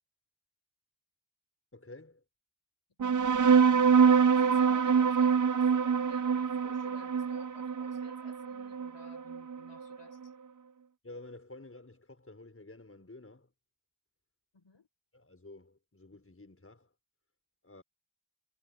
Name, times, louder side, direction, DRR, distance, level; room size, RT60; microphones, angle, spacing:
voice 1, 1.7-2.2 11.0-13.5 15.1-16.9 17.6-17.8, left 2 dB, 25° left, 7.1 m, -51 dB
sound 1, 3.0-10.0, right 6 dB, 40° right, 0.6 m, -25 dB
voice 2, 3.1-10.3 14.5-14.9, left 4 dB, 60° left, 6.1 m, -56 dB
wide cardioid pair, 100°, 50 cm